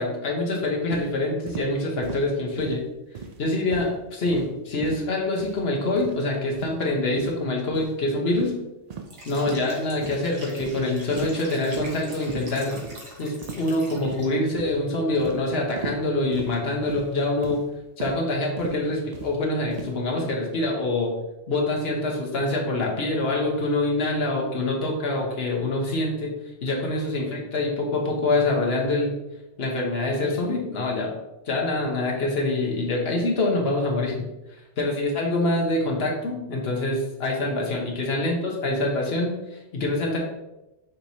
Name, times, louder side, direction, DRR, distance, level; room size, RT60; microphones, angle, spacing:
voice 1, 0.0-2.8 3.4-8.5 9.3-12.8 13.2-17.6 18.0-21.1 21.5-26.3 26.6-29.2 29.6-31.1 31.5-34.3 34.8-40.2, left 2 dB, 60° left, -1 dB, 1.2 m, -25 dB
sound 1, 0.9-1.1 1.5-1.7 2.0-2.3 2.6-2.8 3.1-3.4 3.7-3.9 4.3-4.5 4.8-5.1 5.4-5.6 6.0-6.2 6.5-6.8 7.2-7.4 7.7-7.9 8.3-8.5 8.9-9.1 9.5-9.7 10.0-10.2 10.6-10.9 11.1-11.3 11.7-12.0 12.3-12.5 12.8-13.0 13.4-13.7 14.0-14.3 14.6-14.8 15.2-15.4 15.8-16.0 16.3-16.5 16.9-17.1 17.4-17.6 18.0-18.2 18.6-18.8 19.1-19.3 19.7-19.9, right 4 dB, 60° right, 0.4 m, -37 dB
Liquid, 9.0-14.5, right 1 dB, 85° right, 1.4 m, -44 dB
6.2 x 3.1 x 2.7 m, 0.95 s
omnidirectional pair, 1.2 m